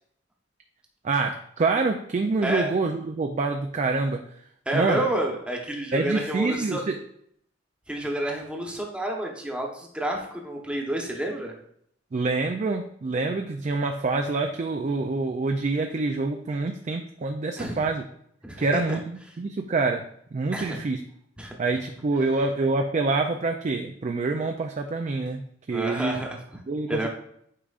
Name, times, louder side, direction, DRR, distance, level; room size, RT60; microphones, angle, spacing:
voice 1, 1.0-4.4 4.7-5.1 5.9-7.0 12.1-18.0 18.6-21.0 21.6-26.2 26.7-27.1, right 3 dB, 35° right, 5 dB, 0.4 m, -26 dB
voice 2, 4.7-6.8 7.9-11.5 17.6-17.9 18.4-19.0 20.5-20.8 21.4-21.6 25.7-26.4 26.9-27.1, right 1 dB, 5° right, 0 dB, 1.0 m, -29 dB
8.6 x 4.9 x 2.4 m, 0.70 s
head